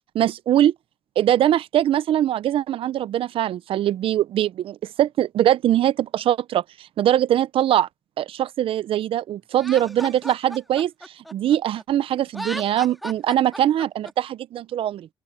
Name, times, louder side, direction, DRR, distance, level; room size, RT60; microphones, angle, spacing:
voice 1, 0.1-0.7 1.2-6.6 7.0-7.9 8.2-10.9 11.2-15.1, right 11 dB, 70° right, 0.7 m, -22 dB
Laughter, 9.6-11.8 12.3-14.1, equal, ahead, 2.4 m, -36 dB
open air
supercardioid pair, 50°, 10 cm